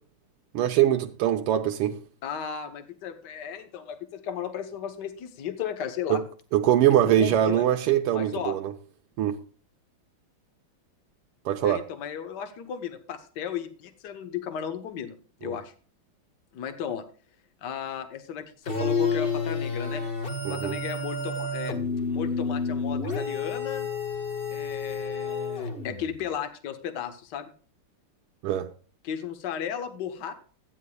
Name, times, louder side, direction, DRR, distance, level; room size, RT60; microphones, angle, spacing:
voice 1, 0.5-2.0 6.1-6.2 6.5-8.7 9.2-9.4 11.5-11.8 15.4-15.6 20.5-20.8 28.4-28.7, right 11 dB, 90° right, 1.7 m, -23 dB
voice 2, 2.2-6.2 7.0-7.6 8.1-8.5 11.6-15.2 15.4-15.7 16.5-17.0 17.6-20.0 20.5-21.8 22.1-23.9 24.5-27.5 29.0-30.3, left 8 dB, 55° left, 1.6 m, -35 dB
sound 1, 18.7-26.1, left 4 dB, 30° left, 1.6 m, -30 dB
15.5 x 9.7 x 2.3 m
omnidirectional pair, 2.4 m